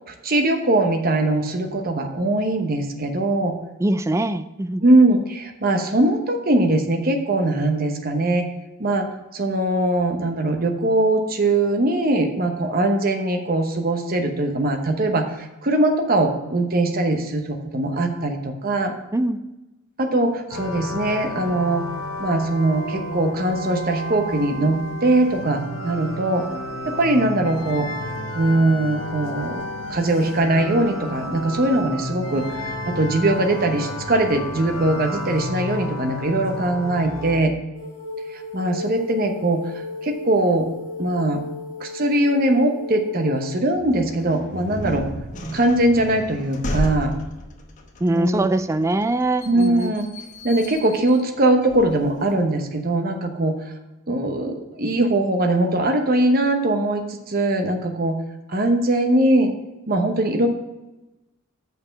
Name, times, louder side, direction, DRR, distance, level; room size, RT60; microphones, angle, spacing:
voice 1, 0.1-3.5 4.8-8.4 8.8-9.1 9.3-18.9 20.0-21.9 22.2-26.4 26.9-27.9 28.3-29.6 29.9-37.5 38.3-40.7 41.0-41.4 41.8-45.0 45.5-47.1 48.1-48.5 49.5-50.0 50.4-53.6 54.1-58.2 58.5-59.5 59.9-60.5, right 2 dB, 45° right, 5 dB, 0.9 m, -21 dB
voice 2, 3.8-4.8 19.1-19.5 44.8-45.1 48.0-49.9, right 2 dB, 15° right, 12 dB, 0.3 m, -23 dB
sound 1, 20.5-37.4, left 1 dB, 85° left, 1.1 m, -31 dB
sound 2, 37.7-43.6, left 3 dB, 90° right, 2.4 m, -34 dB
sound 3, 43.7-52.4, left 1 dB, 40° left, 1.0 m, -33 dB
6.8 x 5.5 x 5.8 m, 1.0 s
head